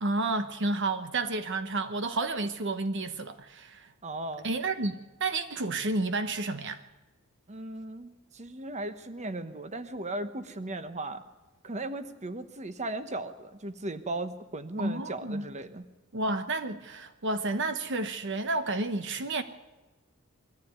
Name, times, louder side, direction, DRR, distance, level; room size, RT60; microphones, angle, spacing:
voice 1, 0.0-3.9 4.4-6.8 14.8-15.4 16.1-19.4, right 2 dB, 55° right, 1.0 m, -31 dB
voice 2, 4.0-4.5 7.5-11.2 11.6-15.8, right 2 dB, 35° right, 1.1 m, -37 dB
22.0 x 14.5 x 9.4 m
head